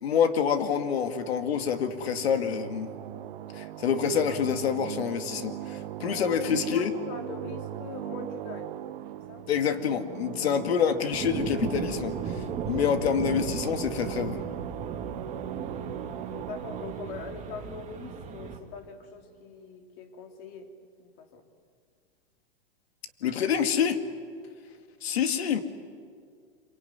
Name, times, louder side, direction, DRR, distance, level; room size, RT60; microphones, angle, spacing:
voice 1, 0.0-2.9 3.5-6.9 9.5-14.4 23.2-24.0 25.0-25.6, left 7 dB, 85° left, 8 dB, 2.3 m, -27 dB
sound 1, 0.8-19.0, right 12 dB, 65° right, 1.3 m, -39 dB
voice 2, 6.0-8.7 9.3-9.5 16.0-20.7 21.0-21.4, left 5 dB, 50° left, 4 dB, 3.6 m, -41 dB
sound 2, 11.1-18.6, right 6 dB, 25° right, 2.7 m, -36 dB
26.0 x 24.0 x 9.6 m, 2.1 s
supercardioid pair, 135°, 30 cm